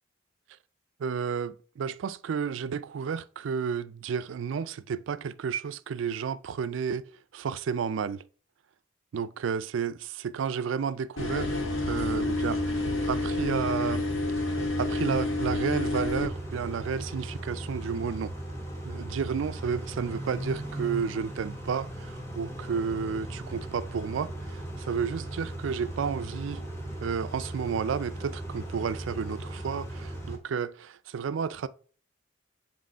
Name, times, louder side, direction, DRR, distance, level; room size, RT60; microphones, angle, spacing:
voice 1, 1.0-8.2 9.1-9.9 10.2-14.1 14.8-18.4 18.8-26.6 27.0-31.7, right 6 dB, 65° right, 0.4 m, -32 dB
sound 1, 11.2-16.3, left 2 dB, 85° left, 1.3 m, -29 dB
Car / Idling / Accelerating revving vroom, 11.3-30.4, right 1 dB, 15° left, 1.2 m, -38 dB
7.7 x 3.1 x 4.3 m
head